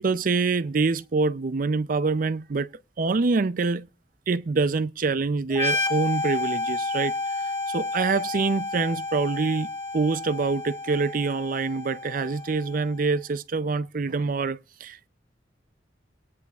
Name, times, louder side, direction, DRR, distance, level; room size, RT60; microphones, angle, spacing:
voice 1, 0.0-2.7 3.0-3.9 4.3-7.1 7.7-9.7 9.9-15.1, right 4 dB, 50° right, 0.5 m, -25 dB
sound 1, 5.5-13.0, left 3 dB, 15° left, 1.6 m, -31 dB
19.0 x 9.7 x 2.4 m
head